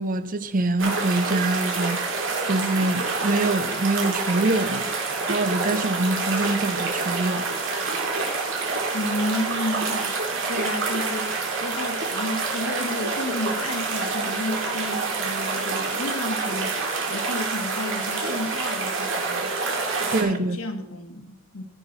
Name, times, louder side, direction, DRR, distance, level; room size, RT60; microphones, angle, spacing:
voice 1, 0.0-4.9 5.3-7.5 20.1-20.6, right 2 dB, 40° right, 0.7 m, -25 dB
sound 1, 0.8-20.2, right 3 dB, 65° right, 2.5 m, -27 dB
voice 2, 8.9-19.5 20.0-21.6, left 1 dB, 85° left, 1.5 m, -32 dB
15.5 x 6.0 x 4.2 m
head